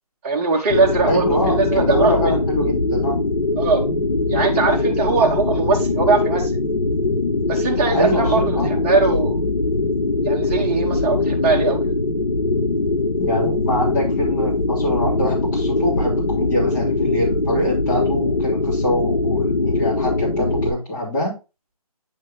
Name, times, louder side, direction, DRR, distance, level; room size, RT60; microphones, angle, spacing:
voice 1, 0.2-2.4 3.6-3.8 4.3-6.5 7.5-9.4 10.2-11.9, right 4 dB, 20° right, -2 dB, 1.2 m, -20 dB
sound 1, 0.7-20.7, left 2 dB, 85° left, 1.7 m, -21 dB
voice 2, 1.1-3.2 7.9-8.9 13.2-21.4, equal, 30° left, -5 dB, 2.9 m, -24 dB
8.9 x 3.8 x 3.6 m, 0.29 s
figure-of-eight pair, 165°, 20 cm